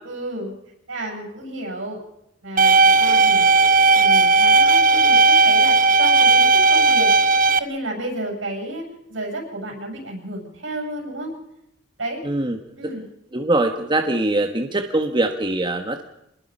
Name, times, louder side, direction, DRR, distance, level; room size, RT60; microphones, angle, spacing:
voice 1, 0.0-0.5 0.9-2.0 2.4-7.1 7.6-8.8 9.1-11.3 12.0-12.2 12.8-13.0, right 1 dB, 80° right, 1 dB, 7.9 m, -31 dB
sound 1, 2.6-7.6, right 3 dB, 45° right, 0.9 m, -15 dB
voice 2, 12.2-12.6 12.8-12.9 13.3-16.0, right 2 dB, 25° right, 4 dB, 1.4 m, -22 dB
26.0 x 20.5 x 5.5 m, 0.82 s
head